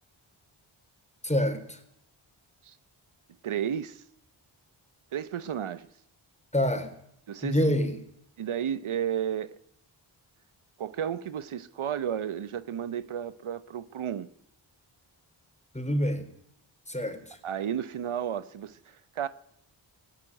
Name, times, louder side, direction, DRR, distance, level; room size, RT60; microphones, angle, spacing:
voice 1, 1.2-1.8 6.5-6.9 7.4-8.0 15.7-16.3 16.9-17.4, equal, 15° left, 3.9 m, -27 dB
voice 2, 3.4-4.0 5.1-5.9 7.3-7.6 8.4-9.6 10.8-14.3 17.4-19.3, right 9 dB, 80° right, 0.9 m, -32 dB
17.0 x 16.0 x 9.8 m
cardioid pair, 50°, 49 cm